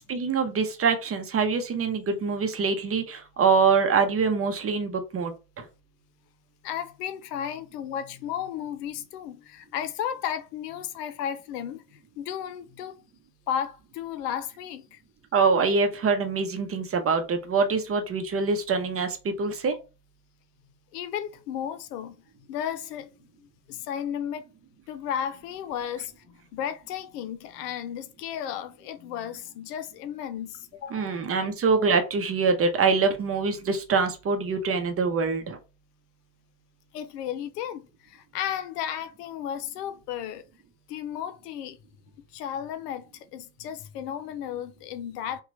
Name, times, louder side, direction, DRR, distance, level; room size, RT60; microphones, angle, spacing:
voice 1, 0.1-5.6 15.3-19.7 30.9-35.6, right 5 dB, 30° right, 0.8 m, -24 dB
voice 2, 6.6-13.0 13.5-15.0 20.9-22.2 22.5-23.1 23.7-24.4 24.9-31.1 36.9-40.4 40.9-41.8 42.3-45.4, left 9 dB, 75° left, 0.7 m, -34 dB
2.9 x 2.3 x 3.9 m
hypercardioid pair, 75°, 47 cm